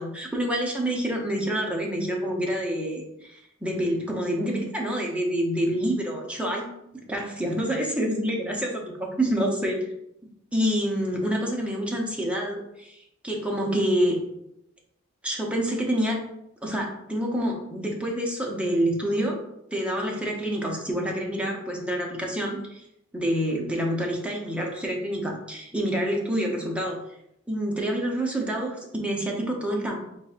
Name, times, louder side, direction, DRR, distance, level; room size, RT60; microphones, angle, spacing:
voice 1, 0.0-6.7 7.1-9.8 10.5-13.0 13.2-14.2 15.2-16.2 16.6-19.4 19.7-22.8 23.1-27.0 27.5-30.0, equal, 5° right, -1 dB, 0.6 m, -27 dB
4.1 x 3.2 x 2.4 m, 0.80 s
head